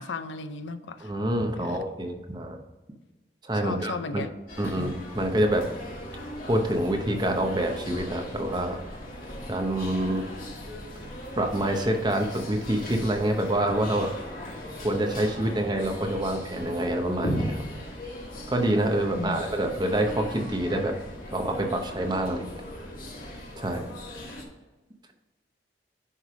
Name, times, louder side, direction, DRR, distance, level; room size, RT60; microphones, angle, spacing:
voice 1, 0.0-1.1 1.6-1.9 3.5-4.3 4.6-4.9 19.2-19.4, left 4 dB, 75° left, 11 dB, 0.5 m, -35 dB
voice 2, 1.0-2.6 3.4-4.2 4.6-5.7 6.5-8.8 9.5-10.3 11.4-14.1 14.8-17.6 18.5-21.0 21.3-22.5 23.6-23.8, right 1 dB, 20° right, 4 dB, 0.8 m, -26 dB
sound 1, 4.5-24.4, equal, 45° left, 1.5 m, -38 dB
9.9 x 3.3 x 4.8 m, 1.2 s
head